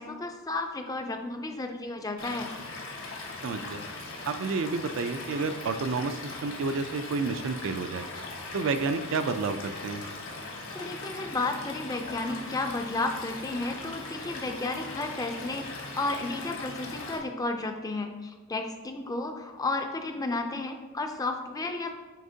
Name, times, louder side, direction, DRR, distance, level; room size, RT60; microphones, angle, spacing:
voice 1, 0.0-2.5 10.7-21.9, left 2 dB, 15° left, 5 dB, 0.4 m, -32 dB
Stream / Liquid, 2.2-17.2, left 3 dB, 65° left, 1.2 m, -40 dB
voice 2, 3.4-3.8 4.3-8.1 8.5-10.0, right 4 dB, 60° right, 9 dB, 0.3 m, -30 dB
8.4 x 4.3 x 2.7 m, 1.3 s
head